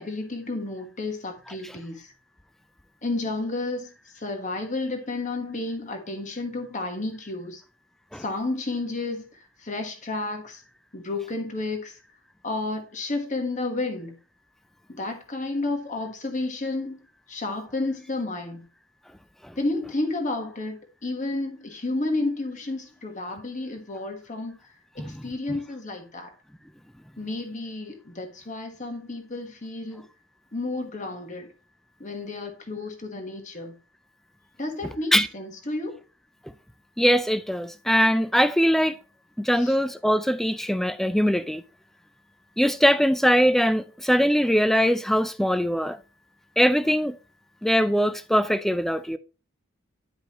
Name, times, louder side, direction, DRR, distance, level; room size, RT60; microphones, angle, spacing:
voice 1, 0.0-2.1 3.0-3.9 4.1-7.6 8.2-10.6 10.9-12.0 12.4-14.1 14.9-17.0 17.3-18.6 19.6-24.6 24.9-26.3 27.2-30.0 30.5-31.5 32.0-33.7 34.6-36.0 39.6-39.7, left 2 dB, 35° left, 1.4 m, -31 dB
voice 2, 37.0-39.0 39.4-41.6 42.6-46.0 46.6-47.2 47.6-49.2, equal, ahead, 0.3 m, -21 dB
10.5 x 5.1 x 3.0 m
head